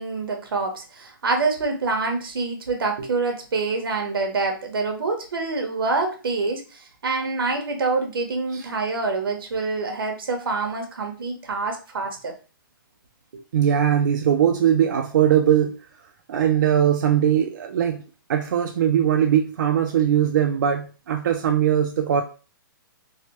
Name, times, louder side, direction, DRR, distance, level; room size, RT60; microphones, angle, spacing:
voice 1, 0.0-12.3, right 3 dB, 85° right, 4 dB, 0.9 m, -26 dB
voice 2, 13.5-15.7 16.3-18.0 18.3-22.2, right 9 dB, 55° right, 4 dB, 0.4 m, -20 dB
3.2 x 2.1 x 2.9 m, 0.35 s
hypercardioid pair, 165°, 12 cm